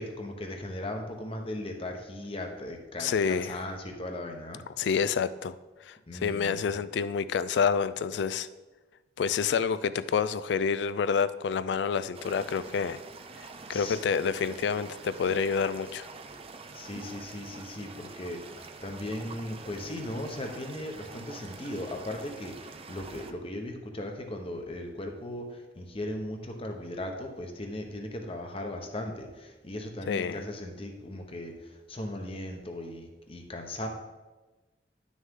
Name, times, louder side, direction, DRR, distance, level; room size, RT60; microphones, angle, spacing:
voice 1, 0.0-4.6 6.1-6.6 13.7-14.0 16.7-33.9, left 1 dB, 30° left, 3 dB, 1.0 m, -38 dB
voice 2, 3.0-3.6 4.8-5.6 5.9-8.5 9.2-13.0 13.7-16.1 30.1-30.4, left 6 dB, 75° left, 15 dB, 0.3 m, -28 dB
sound 1, 12.1-23.3, right 4 dB, 35° right, 0.5 m, -46 dB
9.8 x 6.3 x 3.7 m, 1.2 s
head